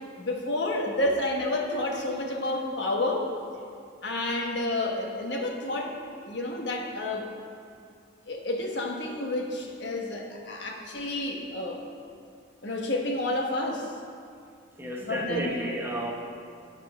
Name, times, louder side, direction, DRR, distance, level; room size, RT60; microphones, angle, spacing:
voice 1, 0.2-3.3 4.0-5.9 6.2-7.3 8.3-11.8 12.6-13.9 15.0-15.5, left 2 dB, 60° left, 1 dB, 1.1 m, -30 dB
voice 2, 14.8-16.1, equal, 10° right, -2 dB, 0.8 m, -31 dB
9.4 x 5.5 x 6.1 m, 2.3 s
head